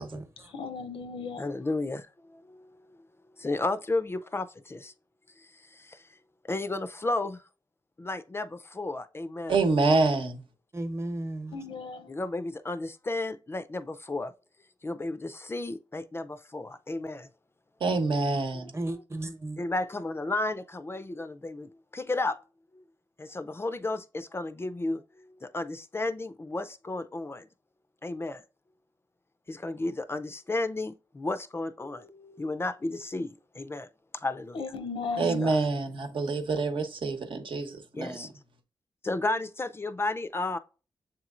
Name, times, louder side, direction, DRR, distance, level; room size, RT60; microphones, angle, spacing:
voice 1, 0.0-0.5 10.7-11.6 18.7-19.6, right 1 dB, 30° right, 0.9 m, -35 dB
voice 2, 0.5-1.5 11.5-12.1 34.5-35.5, left 4 dB, 85° left, 0.7 m, -36 dB
voice 3, 1.4-3.0 3.4-4.9 5.4-6.1 6.5-7.4 8.0-9.6 12.1-14.3 14.8-17.3 18.5-19.0 19.6-22.4 22.7-22.8 23.2-27.5 28.0-28.4 29.5-33.9 34.1-34.6 35.2-35.6 37.9-38.3 39.0-40.6, left 2 dB, 25° left, 0.4 m, -33 dB
voice 4, 9.5-10.4 17.8-18.7 35.2-38.3, right 3 dB, 70° right, 1.0 m, -26 dB
7.3 x 3.0 x 2.4 m
cardioid pair, 70°, 9 cm